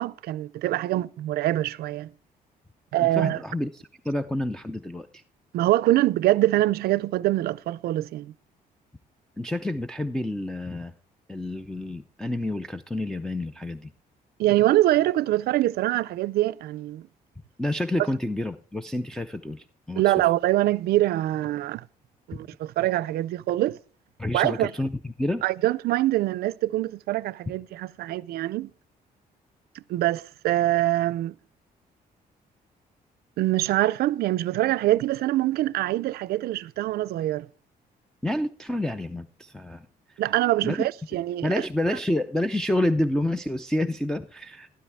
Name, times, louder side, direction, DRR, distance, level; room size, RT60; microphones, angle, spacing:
voice 1, 0.0-2.1 2.9-3.4 5.5-8.3 14.4-17.1 20.0-21.8 22.3-23.8 24.3-24.7 25.4-28.7 29.9-31.3 33.4-37.5 40.2-41.5, right 15 dB, 85° right, 0.4 m, -24 dB
voice 2, 3.0-5.2 9.4-10.9 11.3-13.9 17.6-20.1 24.2-25.4 38.2-39.9 40.6-40.9 41.4-44.7, left 1 dB, 5° left, 0.4 m, -29 dB
12.5 x 12.5 x 3.4 m
cardioid pair, 130°, 16 cm